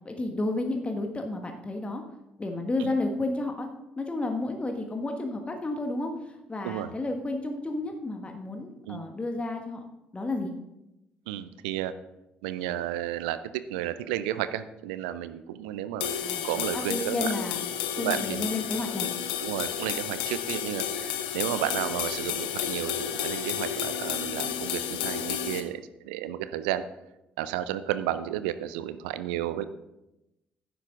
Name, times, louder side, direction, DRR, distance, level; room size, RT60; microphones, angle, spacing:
voice 1, 0.0-2.0 2.4-3.7 4.0-9.8 10.1-10.5 16.2-17.7 18.0-19.1, left 2 dB, 20° left, 4 dB, 1.4 m, -31 dB
voice 2, 11.3-11.9 12.4-16.2 16.4-17.3 17.9-18.5 19.0-19.1 19.4-26.8 27.4-29.6, right 12 dB, 70° right, 13 dB, 0.5 m, -32 dB
sound 1, 16.0-25.6, left 10 dB, 70° left, 0.8 m, -31 dB
11.5 x 10.0 x 3.7 m, 0.91 s
figure-of-eight pair, 45°, 5 cm